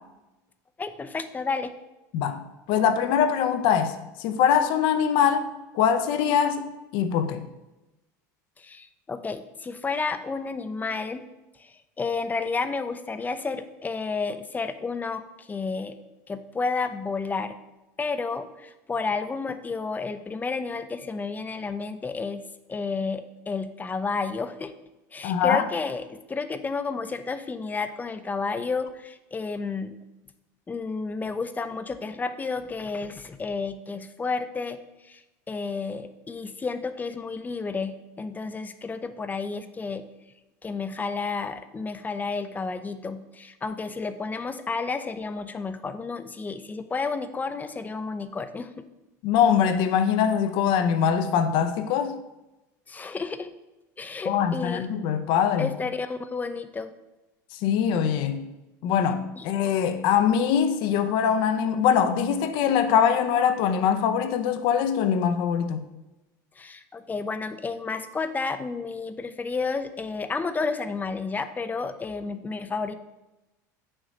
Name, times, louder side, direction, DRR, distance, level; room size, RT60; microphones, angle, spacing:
voice 1, 0.8-1.7 8.6-11.3 11.6-16.0 16.3-17.6 18.0-22.4 22.7-24.7 25.1-29.9 30.7-40.0 40.6-48.8 52.9-53.5 54.0-54.9 55.6-56.9 59.4-59.5 66.6-73.0, left 4 dB, 20° left, 0.5 m, -31 dB
voice 2, 2.7-5.5 5.7-6.6 6.9-7.4 25.2-25.6 49.2-52.2 54.2-55.7 57.6-58.4 58.8-65.8, left 8 dB, 60° left, 0.6 m, -23 dB
6.5 x 3.0 x 5.2 m
hypercardioid pair, 90°, 9 cm